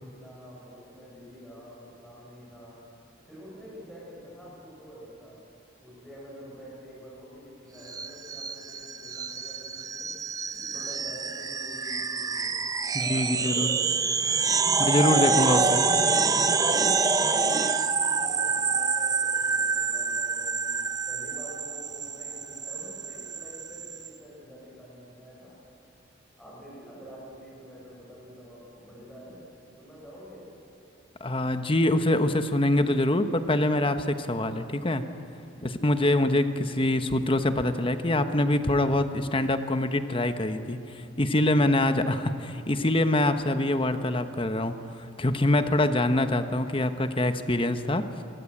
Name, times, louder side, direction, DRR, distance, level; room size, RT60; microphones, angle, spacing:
voice 1, 0.0-2.9 3.3-5.4 5.8-10.2 10.5-12.5 13.0-14.0 14.7-16.6 17.1-25.6 26.4-29.5 29.8-30.5 35.4-35.9, equal, 5° left, -6 dB, 7.0 m, -47 dB
sound 1, 7.9-24.1, right 4 dB, 20° right, 0.6 m, -27 dB
voice 2, 12.9-13.7 14.8-15.6 31.2-35.0 35.6-44.7 45.2-48.1, left 1 dB, 30° left, 9 dB, 1.1 m, -24 dB
24.0 x 21.5 x 8.6 m, 2.7 s
head